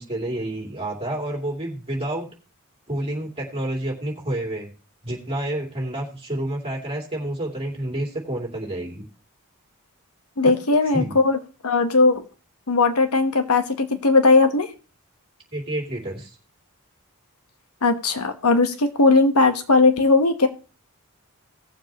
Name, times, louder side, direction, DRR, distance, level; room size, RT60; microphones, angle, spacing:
voice 1, 0.0-2.3 2.9-4.7 5.0-9.0 10.4-10.5 10.9-11.1 15.5-16.3, right 1 dB, 25° right, -2 dB, 3.0 m, -29 dB
voice 2, 10.4-11.4 11.6-12.2 12.7-14.7 17.8-20.5, left 3 dB, 85° left, 8 dB, 1.2 m, -18 dB
18.0 x 7.2 x 3.0 m, 0.34 s
head